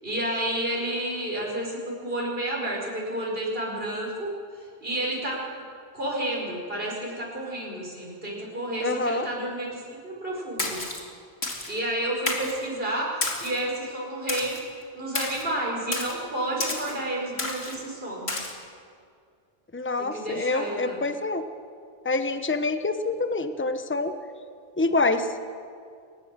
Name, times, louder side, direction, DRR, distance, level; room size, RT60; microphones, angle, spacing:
voice 1, 0.0-4.3 4.8-5.4 5.9-10.8 11.7-13.2 13.4-14.6 14.9-18.3 20.0-21.0, right 1 dB, 65° right, -3 dB, 5.3 m, -30 dB
voice 2, 8.8-9.3 19.7-21.4 22.0-24.1 24.8-25.3, left 3 dB, 10° left, 9 dB, 1.0 m, -26 dB
Splash splatter, 10.6-11.0 11.4-11.7 12.3-12.6 13.2-13.6 14.3-14.6 15.2-15.4 15.9-16.2 16.6-16.9 17.4-17.8 18.3-18.5, left 2 dB, 85° left, 3.0 m, -30 dB
22.5 x 19.5 x 7.5 m, 2.3 s
omnidirectional pair, 1.0 m